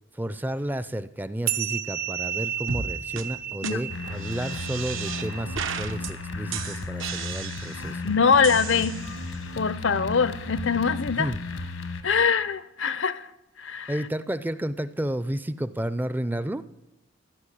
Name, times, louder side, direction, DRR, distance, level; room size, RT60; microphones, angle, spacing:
voice 1, 0.1-8.0 11.1-11.4 13.9-16.6, right 1 dB, 10° right, 15 dB, 0.4 m, -31 dB
sound 1, 1.5-6.3, right 10 dB, 50° right, 0.7 m, -33 dB
sound 2, 2.7-2.9 3.2-3.3 3.6-3.7 4.2-5.3 5.5-6.1 6.5-7.9 8.4-9.4, right 7 dB, 80° right, 1.1 m, -34 dB
sound 3, 3.9-12.0, left 3 dB, 85° left, 1.3 m, -35 dB
voice 2, 8.0-9.0 9.6-11.3 12.0-13.3 13.6-13.9, left 5 dB, 70° left, 17 dB, 0.6 m, -23 dB
14.5 x 6.7 x 9.9 m, 1.0 s
head